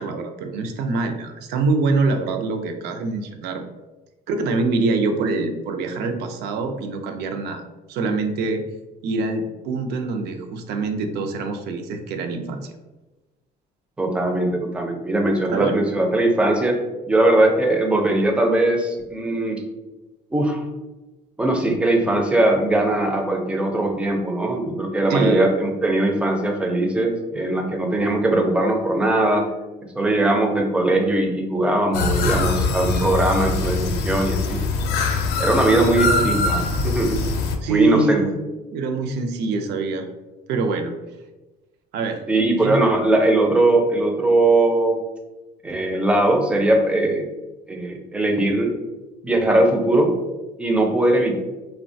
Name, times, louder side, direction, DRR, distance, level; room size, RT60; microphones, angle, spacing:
voice 1, 0.0-3.6 4.3-7.6 7.9-8.6 9.0-12.7 15.5-15.8 25.1-25.5 35.7-36.4 37.6-38.4 38.7-40.1 40.5-40.9 41.9-42.2 42.6-42.8, right 3 dB, 75° right, 6 dB, 0.4 m, -24 dB
voice 2, 14.0-16.8 17.1-19.6 20.3-20.6 21.4-29.5 29.9-34.6 35.4-37.2 37.7-38.2 42.3-45.0 45.6-47.3 47.7-48.7 49.2-50.1 50.6-51.4, right 2 dB, 5° right, 2 dB, 0.4 m, -20 dB
sound 1, 31.9-37.6, left 3 dB, 75° left, 0.4 m, -23 dB
3.0 x 2.1 x 2.6 m, 1.1 s
cardioid pair, 110°, 17 cm